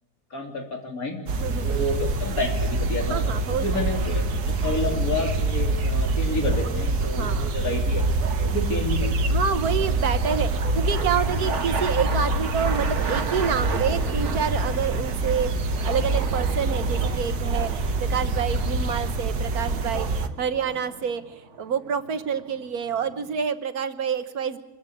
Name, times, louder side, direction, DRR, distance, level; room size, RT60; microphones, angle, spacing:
voice 1, 0.3-1.2 1.6-8.0 8.4-9.3, left 2 dB, 65° left, 2 dB, 3.6 m, -30 dB
voice 2, 1.3-1.8 3.1-3.9 7.2-7.5 9.3-15.5 15.8-17.7 18.0-21.2 21.6-24.6, right 7 dB, 75° right, 11 dB, 1.6 m, -28 dB
sound 1, 1.3-20.3, right 2 dB, 90° right, 1.7 m, -25 dB
sound 2, 8.8-23.4, right 5 dB, 50° right, 1.6 m, -36 dB
25.0 x 14.5 x 8.7 m, 0.98 s
omnidirectional pair, 1.6 m